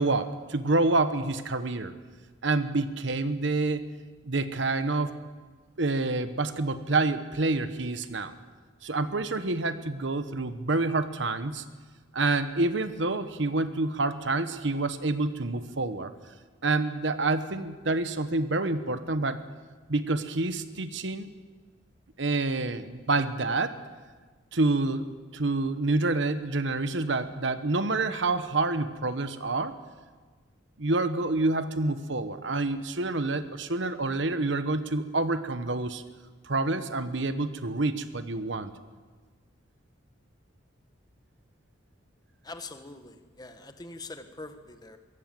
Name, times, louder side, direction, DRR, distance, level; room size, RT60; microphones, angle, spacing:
voice 1, 0.0-1.9 2.4-3.9 4.3-5.1 5.8-8.3 8.8-11.6 12.1-16.1 16.6-19.4 19.9-21.3 22.2-23.8 24.5-25.1 25.3-29.8 30.8-36.0 36.4-38.7, right 2 dB, 65° right, 11 dB, 1.1 m, -27 dB
voice 2, 42.4-45.0, left 3 dB, 20° left, 7 dB, 1.4 m, -43 dB
23.0 x 16.5 x 7.7 m, 1.4 s
head